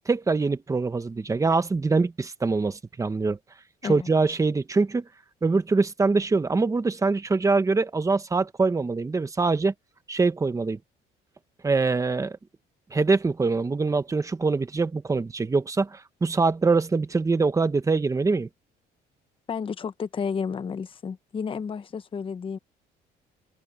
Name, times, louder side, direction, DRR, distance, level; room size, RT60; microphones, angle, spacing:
voice 1, 0.1-3.4 3.8-5.0 5.4-9.7 10.1-10.8 11.6-12.4 12.9-18.5, right 4 dB, 20° right, 1.3 m, -24 dB
voice 2, 19.5-22.6, left 6 dB, 30° left, 0.9 m, -31 dB
open air
cardioid pair, 110°, 17 cm